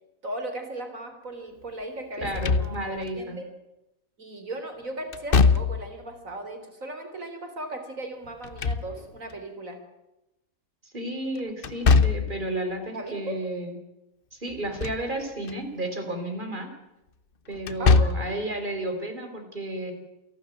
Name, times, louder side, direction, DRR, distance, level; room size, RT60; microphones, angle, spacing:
voice 1, 0.2-3.5 4.2-9.8 12.9-13.4 17.8-18.5, right 1 dB, 75° right, 6 dB, 4.1 m, -37 dB
Slam / Thump thud, 2.2-3.1 5.1-6.0 8.3-9.3 11.6-12.4 14.5-15.1 15.5-15.6 17.6-18.4, left 4 dB, 45° left, 1.0 m, -22 dB
voice 2, 2.2-3.4 10.8-13.8 14.3-16.7 17.5-19.9, right 1 dB, 35° right, 5 dB, 4.4 m, -32 dB
28.5 x 12.5 x 9.2 m, 0.95 s
omnidirectional pair, 1.4 m